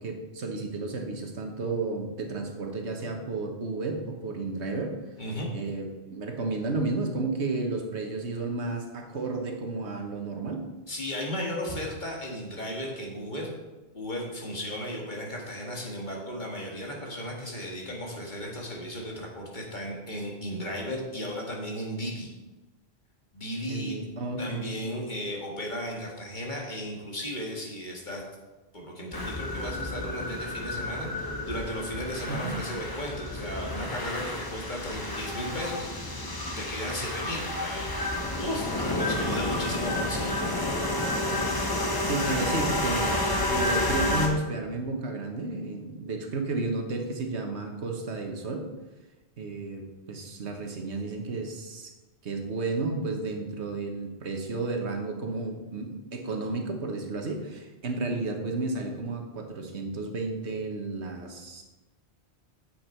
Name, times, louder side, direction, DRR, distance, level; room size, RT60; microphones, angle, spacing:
voice 1, 0.0-4.9 5.5-10.6 23.7-24.7 32.3-32.6 42.0-48.7 49.4-51.9 52.2-61.6, right 3 dB, 85° right, 3 dB, 1.5 m, -32 dB
voice 2, 10.9-13.5 13.9-22.3 23.3-24.0 24.4-28.2 28.7-35.9 36.6-37.9 38.3-40.4, equal, 45° left, -1 dB, 2.1 m, -35 dB
sound 1, 29.1-44.3, left 1 dB, 20° left, 1.2 m, -30 dB
9.4 x 7.4 x 4.5 m, 1.2 s
omnidirectional pair, 1.1 m